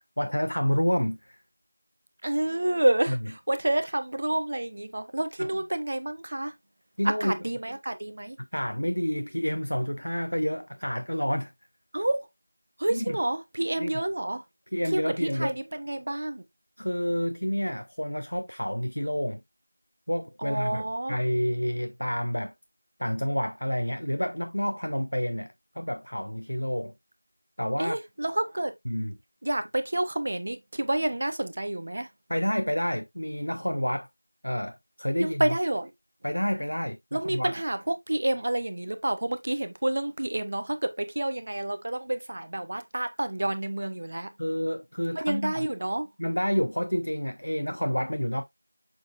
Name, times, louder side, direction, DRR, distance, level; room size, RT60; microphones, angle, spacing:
voice 1, 0.2-1.4 3.1-3.2 5.4-5.5 7.0-7.4 8.5-11.5 12.9-13.0 13.8-13.9 14.7-15.5 16.8-19.4 20.1-22.5 23.0-26.9 27.6-28.0 28.9-29.2 32.3-34.1 34.4-35.6 36.2-37.5 44.4-45.7 46.2-48.4, equal, 70° left, 0.6 m, -29 dB
voice 2, 2.2-6.5 7.0-8.4 11.9-12.3 12.8-14.4 14.9-16.4 20.4-21.2 27.8-28.7 29.4-32.1 35.2-35.9 37.1-44.3 45.1-46.1, right 1 dB, 20° right, 0.6 m, -29 dB
6.7 x 6.2 x 2.4 m
figure-of-eight pair, 175°, 0 cm